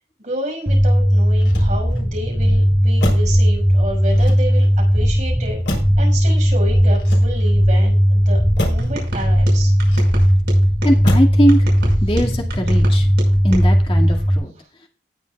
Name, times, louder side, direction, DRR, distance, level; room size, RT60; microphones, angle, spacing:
voice 1, 0.2-8.4 8.7-9.7, right 1 dB, 45° right, -1 dB, 5.7 m, -30 dB
sound 1, 0.7-14.4, equal, ahead, 1.2 m, -16 dB
Motor vehicle (road), 1.3-2.1 3.0-3.4 4.1-4.8 5.7-6.1 6.9-7.7 8.6-8.9 9.8-10.4 11.0-11.4 11.8-12.2, left 1 dB, 75° left, 3.9 m, -28 dB
sound 2, 8.8-11.0 11.5-13.7, right 1 dB, 70° right, 5.7 m, -31 dB
voice 2, 10.8-11.7 12.0-13.1 13.4-14.5, equal, 30° left, 1 dB, 2.1 m, -20 dB
19.0 x 6.8 x 2.4 m, 0.39 s
head